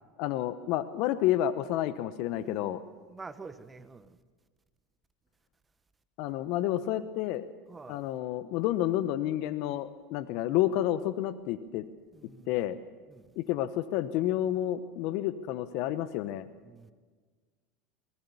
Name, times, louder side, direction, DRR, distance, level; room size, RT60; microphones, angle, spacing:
voice 1, 0.2-2.8 6.2-7.5 7.9-11.8 12.5-12.8 13.4-16.5, left 13 dB, 60° left, 0.9 m, -30 dB
voice 2, 2.4-4.2 7.7-8.0 12.1-12.5 13.1-13.3 16.6-16.9, right 4 dB, 20° right, 1.4 m, -48 dB
23.0 x 20.0 x 7.1 m
hypercardioid pair, 85°, 0 cm